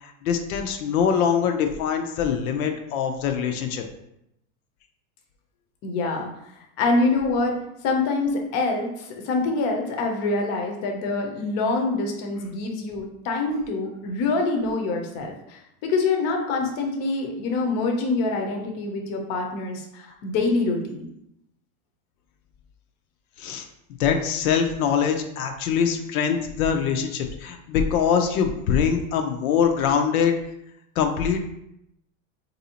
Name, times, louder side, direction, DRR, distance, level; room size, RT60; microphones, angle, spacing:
voice 1, 0.0-3.8 23.4-23.7 24.0-30.4 31.0-31.4, left 7 dB, 80° left, 5 dB, 0.6 m, -23 dB
voice 2, 5.8-6.3 6.8-7.5 7.8-21.0, left 3 dB, 40° left, 2 dB, 0.6 m, -25 dB
3.9 x 2.7 x 2.8 m, 0.80 s
supercardioid pair, 145°, 42 cm